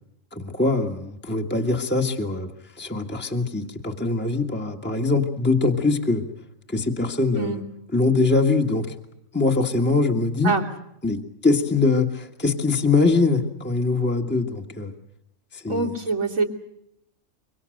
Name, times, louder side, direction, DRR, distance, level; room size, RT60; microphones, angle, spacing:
voice 1, 0.3-6.2 6.7-7.6 7.9-8.9 9.3-10.6 11.0-14.9 15.5-15.9, left 3 dB, 10° left, 2 dB, 1.7 m, -23 dB
voice 2, 15.7-16.4, right 4 dB, 85° right, 1 dB, 3.4 m, -24 dB
25.5 x 24.5 x 6.6 m, 0.80 s
omnidirectional pair, 1.4 m